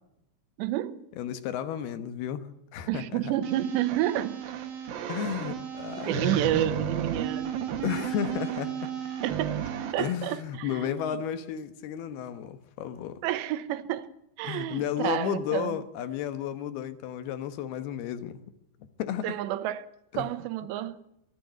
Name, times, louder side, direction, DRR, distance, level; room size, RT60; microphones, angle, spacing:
voice 1, 0.6-1.1 2.9-4.5 6.1-7.6 9.2-11.2 13.2-14.1 14.4-15.8 19.2-19.9 20.1-21.0, right 13 dB, 80° right, 3.2 m, -30 dB
voice 2, 1.2-3.3 5.1-6.4 7.8-8.7 10.0-13.2 14.4-18.4 19.0-19.4 20.1-20.3, left 10 dB, 70° left, 2.9 m, -33 dB
sound 1, 3.4-9.9, right 8 dB, 60° right, 3.1 m, -33 dB
23.5 x 12.0 x 9.4 m
omnidirectional pair, 5.0 m